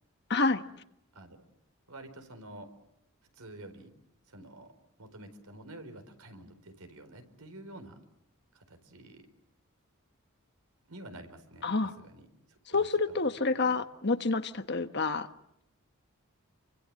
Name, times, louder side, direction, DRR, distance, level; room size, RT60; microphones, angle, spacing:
voice 1, 0.3-0.6 11.6-11.9 12.7-15.3, left 3 dB, 50° left, 9 dB, 1.3 m, -28 dB
voice 2, 1.9-2.7 3.3-3.9 4.3-4.7 5.0-8.0 8.5-9.2 10.9-13.2 13.7-13.8, right 1 dB, 85° right, 8 dB, 4.5 m, -49 dB
29.0 x 24.5 x 7.7 m, 0.79 s
head